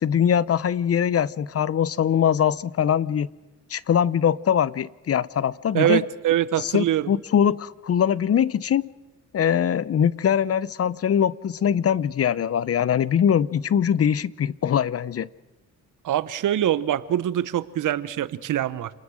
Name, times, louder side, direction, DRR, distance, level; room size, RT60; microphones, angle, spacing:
voice 1, 0.0-3.3 3.7-6.1 6.6-8.9 9.3-15.3, left 8 dB, 45° left, 20 dB, 0.8 m, -22 dB
voice 2, 5.7-7.1 16.0-18.9, right 11 dB, 70° right, 16 dB, 1.1 m, -24 dB
29.0 x 20.0 x 6.4 m, 1.1 s
cardioid pair, 75°, 33 cm